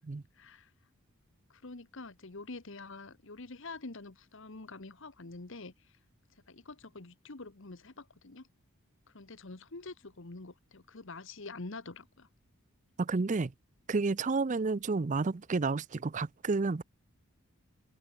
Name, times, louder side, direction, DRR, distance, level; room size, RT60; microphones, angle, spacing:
voice 1, 0.4-0.7 1.5-5.7 6.5-8.5 9.1-12.3, left 3 dB, 60° left, 1.3 m, -46 dB
voice 2, 13.0-13.5 13.9-16.8, right 3 dB, 35° right, 0.5 m, -30 dB
head